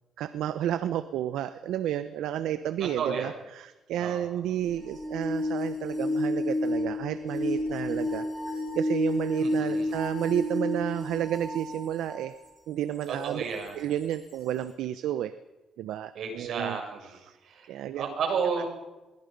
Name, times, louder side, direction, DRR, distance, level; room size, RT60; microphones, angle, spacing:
voice 1, 0.2-12.3 12.7-13.4 13.8-15.3 15.8-16.8 17.1-17.4 17.7-18.1 18.6-18.7, right 11 dB, 85° right, 12 dB, 0.9 m, -31 dB
voice 2, 3.0-3.3 4.0-4.3 9.4-9.9 13.1-13.8 16.1-17.2 17.4-17.7 17.9-18.7, right 6 dB, 70° right, 2 dB, 7.5 m, -32 dB
sound 1, 4.7-12.3 13.0-13.1 14.1-14.2, left 1 dB, 5° left, 5.8 m, -30 dB
24.5 x 22.5 x 5.4 m, 1.1 s
cardioid pair, 90°, 0 cm